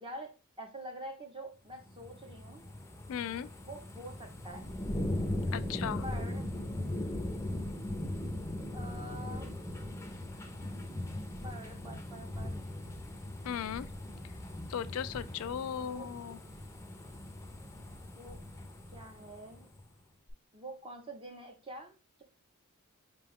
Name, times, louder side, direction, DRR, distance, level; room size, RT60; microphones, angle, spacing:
voice 1, 0.0-2.7 3.6-4.7 6.0-6.5 8.7-9.6 11.4-12.7 15.7-16.1 18.2-18.5 18.9-19.7 20.5-22.2, right 1 dB, 25° right, 0.7 m, -46 dB
sound 1, 1.7-19.9 20.3-20.4, left 1 dB, 15° left, 0.5 m, -39 dB
voice 2, 3.1-3.5 5.5-6.0 13.5-13.9 14.7-16.4, left 9 dB, 70° left, 0.3 m, -37 dB
5.2 x 2.2 x 3.5 m
head